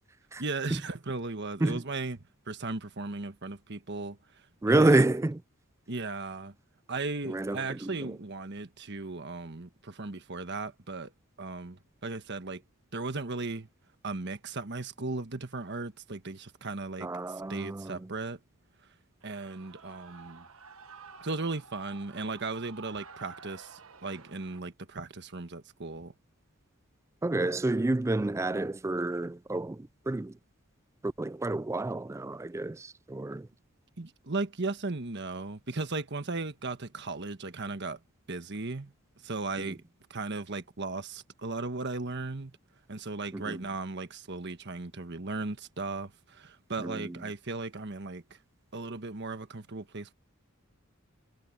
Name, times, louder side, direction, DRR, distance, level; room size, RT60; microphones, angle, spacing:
voice 1, 0.4-2.2 2.5-5.0 5.9-6.5 6.9-11.1 11.4-12.6 12.9-13.7 14.0-18.4 19.2-20.4 21.2-26.1 34.0-38.0 38.3-38.9 39.2-39.8 40.1-42.6 42.9-48.4 48.7-50.1, right 3 dB, 55° right, 1.4 m, -36 dB
voice 2, 4.6-5.4 7.2-8.2 17.0-18.1 27.2-30.4 31.0-33.5 39.6-39.7 43.3-43.6 46.8-47.2, right 2 dB, 15° right, 0.3 m, -29 dB
Shout / Cheering, 19.2-24.6, right 5 dB, 75° right, 1.4 m, -51 dB
head